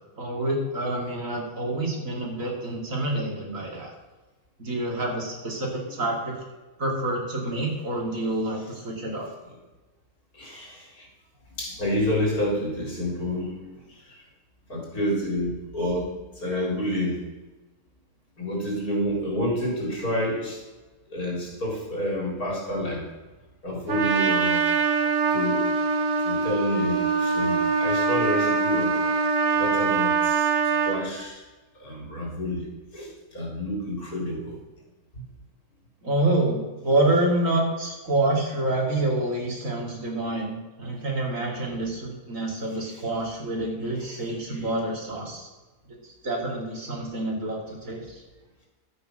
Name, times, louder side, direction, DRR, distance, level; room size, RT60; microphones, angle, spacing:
voice 1, 0.2-3.9 4.6-6.3 6.8-9.3 36.0-45.5 46.2-48.2, right 2 dB, 60° right, -1 dB, 3.2 m, -27 dB
voice 2, 10.3-11.1 11.6-13.7 14.7-16.1 16.4-17.2 18.4-20.6 21.1-23.1 23.6-24.6 25.3-25.6 26.2-28.9 29.5-30.5 30.9-31.4 31.8-34.6 41.5-41.8 42.8-43.0 44.0-44.2 44.5-44.7, left 1 dB, 80° left, -1 dB, 4.4 m, -29 dB
Trumpet, 23.9-31.0, right 5 dB, 85° right, 1.8 m, -23 dB
12.0 x 8.7 x 6.5 m, 1.2 s
omnidirectional pair, 1.5 m